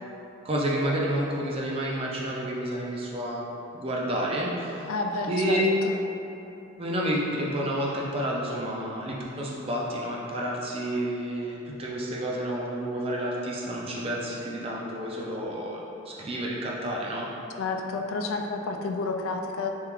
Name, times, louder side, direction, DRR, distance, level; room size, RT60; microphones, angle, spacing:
voice 1, 0.4-4.9 5.3-5.6 6.8-17.3, right 1 dB, 25° right, -4 dB, 0.4 m, -30 dB
voice 2, 4.9-5.9 17.6-19.7, left 3 dB, 75° left, 3 dB, 0.3 m, -30 dB
3.5 x 2.9 x 3.0 m, 2.9 s
head